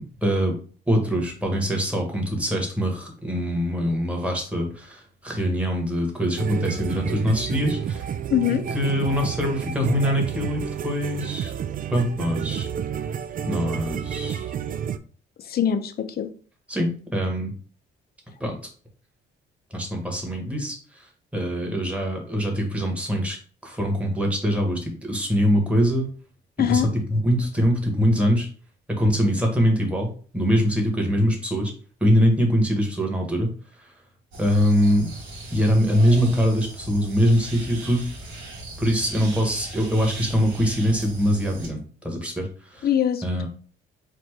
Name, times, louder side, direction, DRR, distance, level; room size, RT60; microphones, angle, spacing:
voice 1, 0.2-0.6 0.9-8.0 8.7-11.5 11.9-12.7 13.4-14.5 16.7-17.5 18.4-18.6 19.7-21.1 21.3-23.4 23.6-26.1 26.7-28.5 28.9-31.7 32.0-33.5 33.8-33.9 34.4-35.1 35.5-38.1 38.8-42.9 43.2-43.5, equal, 5° right, 1 dB, 1.6 m, -23 dB
sound 1, 6.4-15.0, right 8 dB, 45° right, 0.4 m, -30 dB
voice 2, 8.3-8.6 15.4-16.3 26.6-26.9 42.8-43.2, left 9 dB, 50° left, 8 dB, 0.6 m, -22 dB
sound 2, 34.3-41.7, right 2 dB, 70° right, 1.7 m, -39 dB
4.4 x 2.5 x 4.6 m, 0.42 s
cardioid pair, 90°, 20 cm